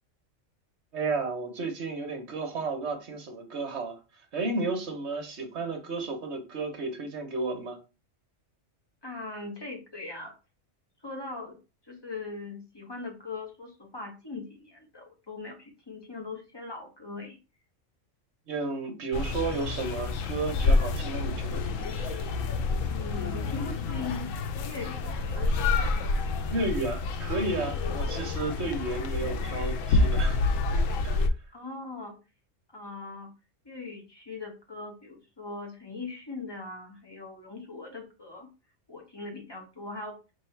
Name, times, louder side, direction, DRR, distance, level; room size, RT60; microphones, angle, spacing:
voice 1, 0.9-4.0 4.3-7.8 18.5-21.7 21.9-22.3 26.5-30.4 31.0-31.2, right 3 dB, 60° right, 1.3 m, -32 dB
voice 2, 9.0-10.3 11.0-11.6 11.8-17.4 22.9-25.5 31.5-32.2 32.7-33.3 33.6-38.5 38.9-40.2, left 3 dB, 20° left, 1.1 m, -40 dB
sound 1, 19.1-31.3, left 3 dB, 90° left, 1.0 m, -28 dB
3.2 x 3.0 x 4.4 m
omnidirectional pair, 1.3 m